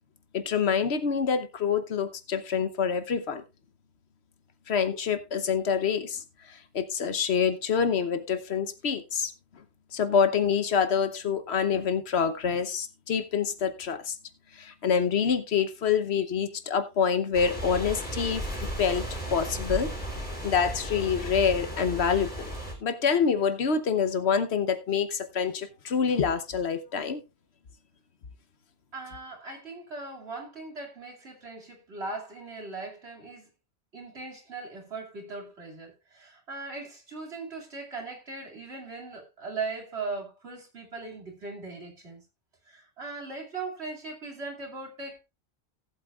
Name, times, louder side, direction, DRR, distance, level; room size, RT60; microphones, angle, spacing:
voice 1, 0.3-3.4 4.7-6.2 6.7-9.3 9.9-14.1 14.6-18.5 18.8-19.9 20.4-22.5 22.8-27.2, left 6 dB, 70° left, 1.2 m, -26 dB
sound 1, 17.3-22.7, equal, 10° left, 3.2 m, -35 dB
voice 2, 28.9-33.5 33.9-42.2 42.7-45.2, right 3 dB, 70° right, 2.9 m, -39 dB
18.0 x 8.1 x 2.4 m
omnidirectional pair, 1.1 m